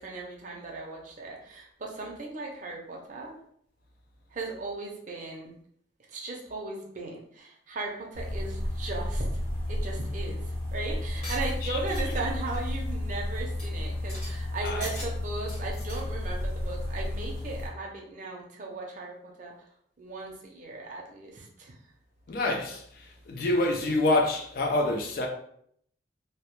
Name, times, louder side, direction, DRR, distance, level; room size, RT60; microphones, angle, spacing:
voice 1, 0.0-3.3 4.3-5.5 6.1-9.3 9.7-10.4 10.7-19.5 20.0-21.7, right 3 dB, 40° right, 0.5 m, -37 dB
sound 1, 8.1-17.7, left 1 dB, 70° left, 0.8 m, -32 dB
sound 2, 11.2-12.2 12.5-12.7 13.1-13.2 13.6-13.7 13.9-14.3 14.6-15.1 15.4-16.0, left 1 dB, 35° left, 0.9 m, -42 dB
voice 2, 22.3-25.3, left 2 dB, 50° left, 0.3 m, -27 dB
2.1 x 2.1 x 2.9 m
head